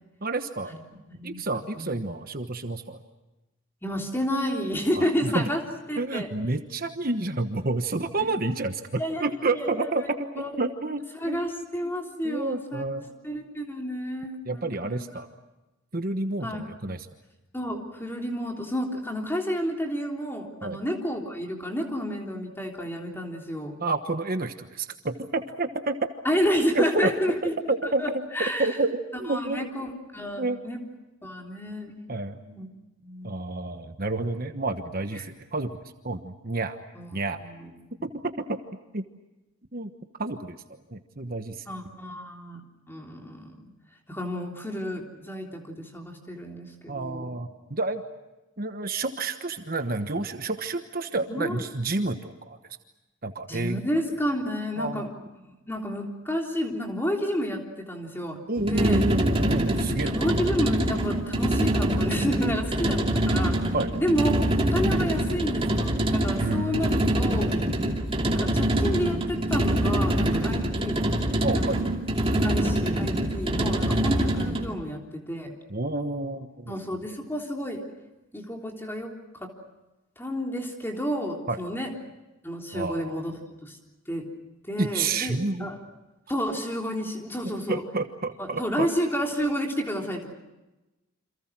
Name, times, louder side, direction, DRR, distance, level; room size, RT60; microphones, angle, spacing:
voice 1, 0.2-0.7 1.2-3.0 4.9-5.5 6.0-10.0 10.3-11.0 11.3-11.4 12.2-13.1 14.4-15.3 15.9-17.1 20.6-20.8 23.8-26.0 26.7-27.1 27.7-28.0 28.6-29.7 30.4-30.6 32.1-32.4 33.2-35.8 36.0-36.8 37.1-37.4 38.0-38.6 38.9-39.1 39.7-39.9 40.2-40.6 40.9-41.6 46.9-48.0 48.6-52.6 53.2-53.8 54.8-55.1 58.5-60.2 63.7-63.9 66.4-67.0 70.3-70.5 71.4-71.8 75.7-76.7 81.5-81.6 82.7-83.2 84.8-85.7 87.7-88.9, right 2 dB, 45° right, 7 dB, 1.2 m, -29 dB
voice 2, 1.1-1.4 1.8-2.0 3.8-5.6 5.9-6.3 9.0-9.3 9.5-9.8 10.4-10.6 11.2-12.8 13.2-15.0 16.4-16.7 17.5-23.7 26.2-27.5 28.0-28.7 29.3-30.8 31.2-32.0 32.4-32.7 33.0-33.6 37.0-37.1 37.4-37.7 41.7-43.6 44.1-47.2 51.3-51.6 53.5-55.1 55.4-59.0 60.0-67.5 68.3-71.1 71.6-71.8 72.4-75.5 76.7-77.8 78.3-79.1 79.4-79.5 80.2-81.9 82.4-83.3 83.6-83.8 84.1-84.3 84.7-85.8 86.3-87.8 88.6-90.3, equal, 10° left, 1 dB, 3.6 m, -30 dB
sound 1, 58.6-74.7, right 1 dB, 25° right, 2.7 m, -25 dB
28.5 x 27.0 x 6.1 m, 1.0 s
head